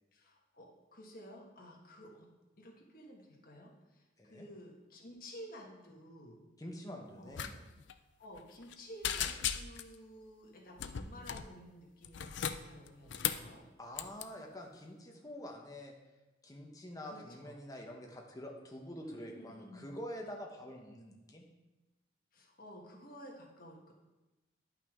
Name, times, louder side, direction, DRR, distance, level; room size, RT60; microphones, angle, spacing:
voice 1, 0.1-2.3 2.6-6.4 7.2-7.4 8.2-13.7 17.0-17.6 19.0-20.0 22.3-23.9, equal, 50° left, -2 dB, 1.5 m, -53 dB
voice 2, 4.2-4.5 6.6-7.6 13.8-15.9 16.4-21.4, equal, 20° left, 1 dB, 0.9 m, -46 dB
sound 1, 7.3-7.5 7.8-7.9 8.4-8.7 9.0-9.9 10.8-11.5 12.0-13.5 13.9-14.2, left 9 dB, 70° left, 0.4 m, -37 dB
10.5 x 5.7 x 3.7 m, 1.1 s
head